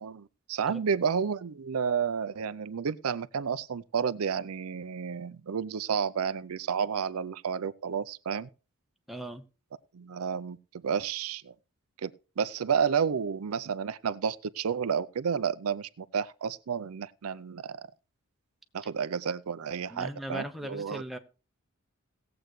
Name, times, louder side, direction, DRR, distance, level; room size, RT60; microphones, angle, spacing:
voice 1, 0.0-8.5 9.9-10.6 10.8-11.5 12.0-17.8 18.7-21.0, right 6 dB, 85° right, 0.5 m, -31 dB
voice 2, 9.1-9.4 19.9-21.2, equal, ahead, 0.9 m, -38 dB
17.5 x 7.9 x 3.1 m
head